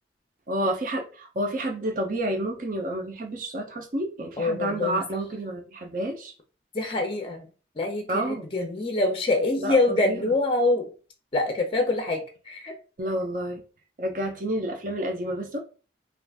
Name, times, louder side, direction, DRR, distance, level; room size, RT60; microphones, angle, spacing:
voice 1, 0.5-6.3 8.1-8.5 9.6-10.3 13.0-13.6 14.0-15.6, right 1 dB, 45° right, 0.6 m, -30 dB
voice 2, 4.4-5.0 6.7-7.4 7.8-10.9 11.3-12.7, left 2 dB, 30° left, 0.5 m, -25 dB
2.5 x 2.4 x 3.3 m
head